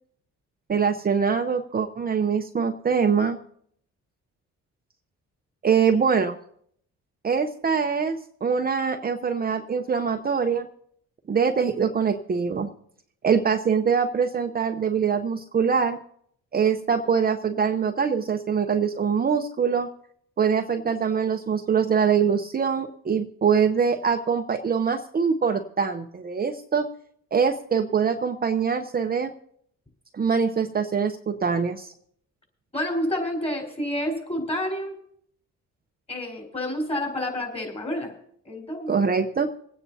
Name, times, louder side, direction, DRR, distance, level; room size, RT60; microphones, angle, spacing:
voice 1, 0.7-3.4 5.6-6.4 7.2-10.7 11.3-12.7 13.2-16.0 16.5-19.9 20.4-26.9 27.3-29.3 30.1-31.9 38.9-39.5, right 6 dB, 30° right, 5 dB, 0.7 m, -23 dB
voice 2, 32.7-34.9 36.1-38.1 38.4-39.0, left 1 dB, 20° left, 1 dB, 4.4 m, -29 dB
27.0 x 9.1 x 2.8 m, 0.65 s
cardioid pair, 90°, 30 cm